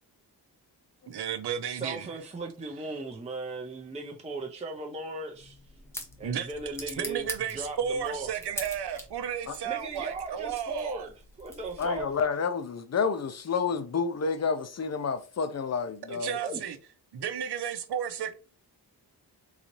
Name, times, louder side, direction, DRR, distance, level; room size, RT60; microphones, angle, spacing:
voice 1, 1.1-2.1 6.2-6.5 7.0-11.1 16.1-16.8 17.1-18.3, right 8 dB, 75° right, 0.7 m, -33 dB
voice 2, 1.7-5.6 6.2-7.3 7.5-8.3 9.6-11.1 11.4-12.1 16.4-16.6, right 3 dB, 15° right, 0.5 m, -37 dB
sound 1, 5.3-12.2, left 1 dB, 5° left, 0.8 m, -44 dB
voice 3, 11.8-16.4, left 5 dB, 40° left, 0.6 m, -29 dB
3.9 x 2.7 x 3.0 m
wide cardioid pair, 120°, 40 cm